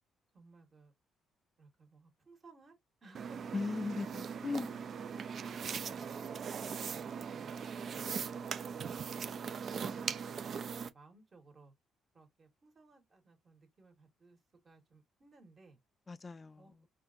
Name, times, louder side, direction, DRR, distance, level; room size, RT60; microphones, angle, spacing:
voice 1, 0.3-0.9 1.6-2.7 3.0-3.5 4.5-4.7 5.1-6.3 6.6-8.3 10.8-11.7 12.1-14.4 14.6-15.8 16.6-16.7, right 3 dB, 35° right, 1.6 m, -60 dB
sound 1, 3.1-10.9, right 6 dB, 55° right, 0.4 m, -40 dB
voice 2, 3.5-4.9 16.1-16.7, left 4 dB, 30° left, 0.3 m, -38 dB
4.4 x 2.5 x 2.6 m
cardioid pair, 95°, 0 cm